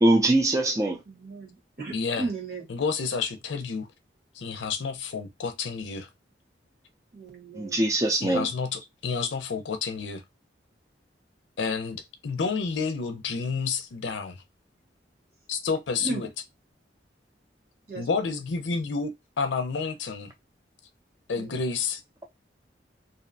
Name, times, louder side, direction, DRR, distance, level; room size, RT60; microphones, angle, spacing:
voice 1, 0.0-1.0 7.5-8.5, right 1 dB, 20° right, 0.5 m, -22 dB
voice 2, 1.1-2.7 7.1-7.9 16.0-16.3 17.9-18.1 21.3-21.6, right 3 dB, 55° right, 1.1 m, -36 dB
voice 3, 1.9-2.3 2.7-3.9 4.4-6.1 8.1-10.2 11.6-14.4 15.5-16.3 18.0-19.1 19.4-20.3 21.3-22.0, left 5 dB, 85° left, 0.5 m, -30 dB
2.6 x 2.1 x 2.5 m
head